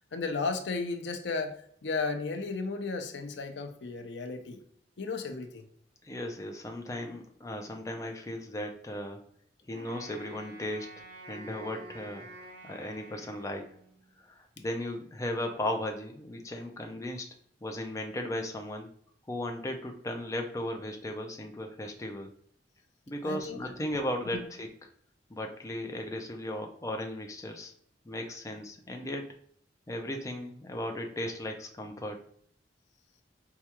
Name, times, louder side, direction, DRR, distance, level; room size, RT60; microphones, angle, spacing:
voice 1, 0.1-1.5 1.8-4.6 5.0-5.6 23.2-23.6 24.3-24.4, left 4 dB, 70° left, 6 dB, 0.5 m, -34 dB
voice 2, 6.0-9.2 9.7-10.9 11.3-13.7 14.2-17.3 17.6-18.9 19.3-22.3 23.1-24.9 25.3-27.7 28.1-29.3 29.9-32.2, left 1 dB, 20° left, 3 dB, 0.4 m, -36 dB
Wind instrument woodwind instrument, 9.7-14.1, right 2 dB, 60° right, 0.8 m, -49 dB
4.6 x 2.3 x 2.9 m, 0.63 s
head